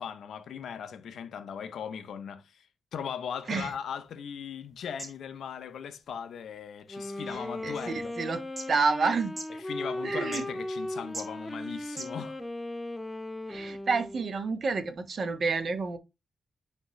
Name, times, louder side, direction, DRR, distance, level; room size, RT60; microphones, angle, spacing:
voice 1, 0.0-2.7 2.9-8.2 9.6-12.4, left 7 dB, 85° left, 0.7 m, -38 dB
sound 1, 3.3-12.5, right 2 dB, 25° right, 2.0 m, -49 dB
Wind instrument woodwind instrument, 6.8-14.5, left 1 dB, 10° left, 1.0 m, -37 dB
voice 2, 7.3-8.4 8.7-9.3 10.0-10.4 13.5-16.0, right 4 dB, 55° right, 1.2 m, -29 dB
9.5 x 3.5 x 3.1 m
cardioid pair, 90°, 0 cm